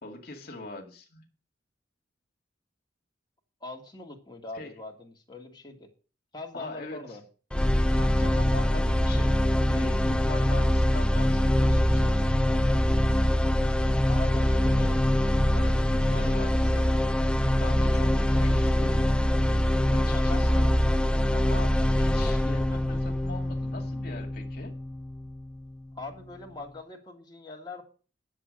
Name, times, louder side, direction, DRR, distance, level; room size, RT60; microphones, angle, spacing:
voice 1, 0.0-1.3 4.5-4.7 6.5-7.0 7.9-12.2 15.5-16.8 17.6-19.1 19.9-20.7 21.3-24.7, left 2 dB, 55° left, 2 dB, 2.0 m, -42 dB
voice 2, 3.6-5.9 6.3-7.2 14.1-15.0 16.1-16.9 18.0-18.5 20.1-20.4 25.9-27.8, left 3 dB, 25° left, -1 dB, 2.0 m, -42 dB
sound 1, 7.5-25.5, left 1 dB, 5° left, 0.5 m, -24 dB
10.0 x 7.5 x 6.4 m, 0.37 s
head